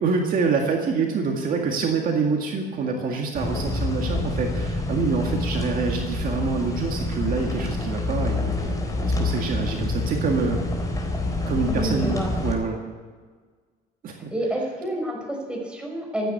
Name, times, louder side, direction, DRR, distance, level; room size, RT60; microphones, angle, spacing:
voice 1, 0.0-8.7 9.0-10.6 11.5-12.2 12.4-12.8 14.0-14.3, right 4 dB, 55° right, 1 dB, 2.0 m, -26 dB
sound 1, 3.3-12.5, left 2 dB, 20° left, 3.9 m, -27 dB
voice 2, 11.7-12.4 14.3-16.3, right 1 dB, 5° right, -1 dB, 5.7 m, -28 dB
15.0 x 9.6 x 8.5 m, 1.5 s
cardioid pair, 110°, 17 cm